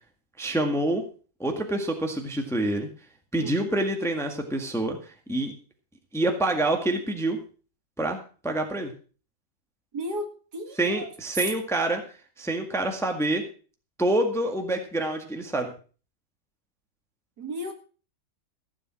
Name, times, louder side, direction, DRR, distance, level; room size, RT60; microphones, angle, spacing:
voice 1, 0.4-1.0 1.4-2.9 3.3-5.5 6.1-7.4 8.0-8.2 8.4-8.9 10.8-12.0 12.4-13.4 14.0-15.7, right 1 dB, ahead, 4 dB, 1.6 m, -26 dB
voice 2, 9.9-11.1 11.4-11.5 17.4-17.7, right 1 dB, 55° right, 5 dB, 2.5 m, -34 dB
15.5 x 7.4 x 6.2 m, 0.39 s
omnidirectional pair, 2.1 m